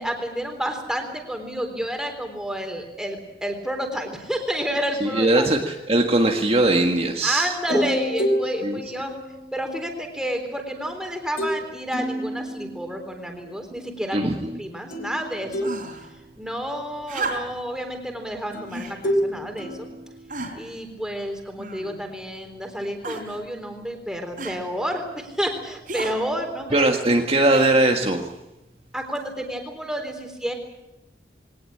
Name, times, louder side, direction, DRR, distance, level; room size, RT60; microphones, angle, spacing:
voice 1, 0.0-5.5 7.2-9.1 9.5-14.2 14.6-15.7 16.4-19.9 20.5-26.9 28.9-30.5, equal, 5° right, 4 dB, 3.9 m, -30 dB
voice 2, 5.0-7.5 8.6-8.8 14.1-14.6 26.7-28.3, right 2 dB, 35° right, 2 dB, 1.7 m, -20 dB
sound 1, 7.7-10.0 11.4-11.6 11.9-13.2 14.9-16.6 18.5-20.8, equal, 50° left, 3.6 m, -29 dB
sound 2, 15.6-16.1 17.1-17.7 18.7-19.0 19.7-19.8 20.3-20.7 21.6-22.1 23.0-23.4 24.4-24.6 25.9-26.2 27.5-27.9 29.0-29.1, right 3 dB, 50° right, 4.1 m, -33 dB
22.0 x 18.5 x 8.7 m, 0.97 s
head